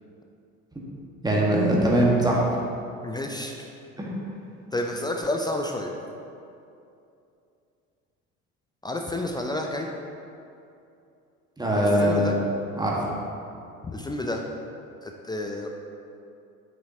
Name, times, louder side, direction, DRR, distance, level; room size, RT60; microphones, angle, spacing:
voice 1, 1.2-2.4 4.0-4.1 11.6-12.4 12.8-13.0, right 1 dB, 10° right, -4 dB, 1.4 m, -21 dB
voice 2, 3.0-3.7 4.7-5.9 8.8-9.9 11.8-12.4 13.8-14.4 15.0-15.7, left 1 dB, 10° left, 2 dB, 0.4 m, -30 dB
9.0 x 5.8 x 2.8 m, 2.6 s
figure-of-eight pair, 65°, 42 cm